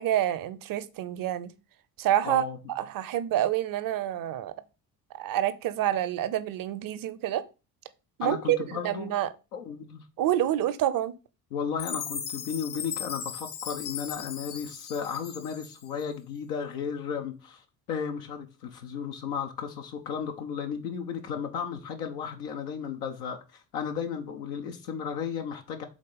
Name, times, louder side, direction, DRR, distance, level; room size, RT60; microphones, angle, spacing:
voice 1, 0.0-1.5 2.0-2.4 2.7-4.5 5.1-7.4 8.2-9.3 10.2-11.1, right 12 dB, 45° right, 0.7 m, -27 dB
voice 2, 2.2-2.6 8.2-9.1 9.5-10.0 11.5-25.8, left 7 dB, 70° left, 0.9 m, -34 dB
Chime, 11.8-16.0, left 7 dB, 50° left, 1.2 m, -38 dB
5.1 x 3.9 x 5.4 m
figure-of-eight pair, 45°, 48 cm